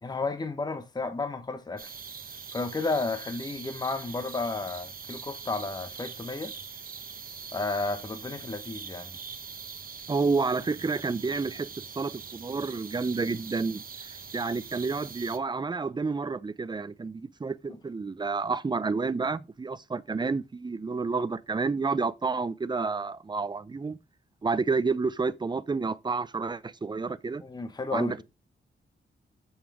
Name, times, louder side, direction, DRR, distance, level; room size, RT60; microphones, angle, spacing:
voice 1, 0.0-1.9 2.5-6.5 7.5-9.2 27.4-28.1, left 3 dB, 20° left, 0.9 m, -32 dB
sound 1, 1.8-15.4, right 6 dB, 45° right, 0.9 m, -43 dB
voice 2, 10.1-11.7 12.0-24.0 24.4-27.4 27.9-28.2, right 4 dB, 20° right, 0.5 m, -30 dB
7.1 x 5.6 x 4.8 m
wide cardioid pair, 135°, 21 cm